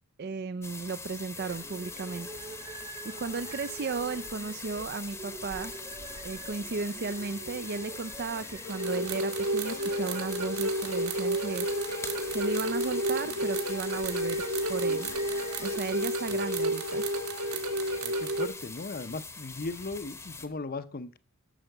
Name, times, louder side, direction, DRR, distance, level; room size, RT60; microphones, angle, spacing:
voice 1, 0.2-2.4 3.0-5.7 6.2-11.7 12.3-14.4 14.7-15.2 15.6-17.1, right 4 dB, 45° right, 11 dB, 0.4 m, -35 dB
sound 1, 0.6-20.5, left 4 dB, 10° left, 0.9 m, -43 dB
sound 2, 1.4-15.8, right 2 dB, 20° right, 1.0 m, -45 dB
sound 3, 8.6-18.5, right 1 dB, 80° right, 1.8 m, -31 dB
voice 2, 18.0-21.2, left 3 dB, 40° left, 13 dB, 0.7 m, -37 dB
11.5 x 7.0 x 6.6 m, 0.39 s
head